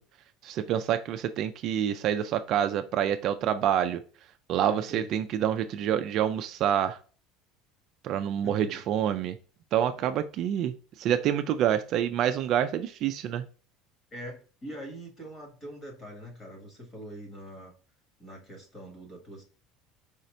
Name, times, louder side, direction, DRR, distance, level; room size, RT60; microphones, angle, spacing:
voice 1, 0.4-4.0 4.5-7.0 8.0-9.4 9.7-13.4, right 10 dB, 45° right, 9 dB, 0.3 m, -27 dB
voice 2, 4.7-5.1 8.4-8.8 10.0-10.1 14.1-17.7 18.2-19.4, right 1 dB, 20° left, 1 dB, 1.4 m, -43 dB
4.9 x 2.7 x 3.2 m, 0.38 s
cardioid pair, 165°, 0 cm